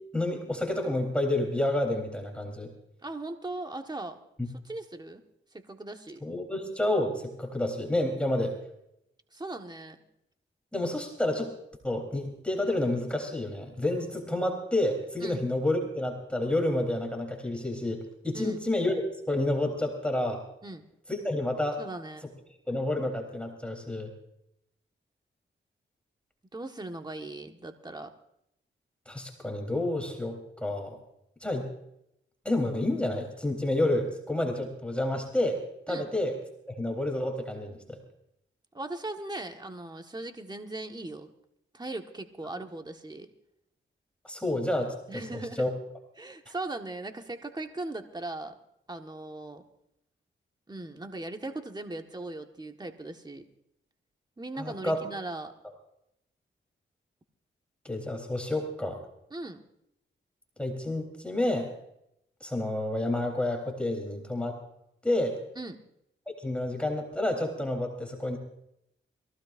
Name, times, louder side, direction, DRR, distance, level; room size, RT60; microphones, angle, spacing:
voice 1, 0.1-2.7 4.4-4.5 6.2-8.6 10.7-11.5 11.8-18.0 18.2-20.4 21.1-21.8 22.7-24.1 29.1-31.0 31.4-31.7 32.5-36.3 36.7-38.0 44.2-45.7 54.6-55.0 57.8-59.0 60.6-61.7 62.4-64.6 65.0-65.4 66.4-68.4, left 1 dB, 5° left, 1 dB, 3.7 m, -29 dB
voice 2, 3.0-4.2 4.6-5.2 5.5-6.2 9.3-10.0 15.2-15.4 18.3-18.6 20.6-20.8 21.8-22.2 26.5-28.1 35.9-36.1 38.7-41.3 41.7-43.3 45.1-45.6 46.2-48.6 48.9-49.6 50.7-53.5 54.4-55.5 59.3-59.6 65.6-65.8, right 2 dB, 20° right, 5 dB, 1.5 m, -38 dB
24.0 x 16.0 x 2.6 m, 0.79 s
cardioid pair, 55°, 21 cm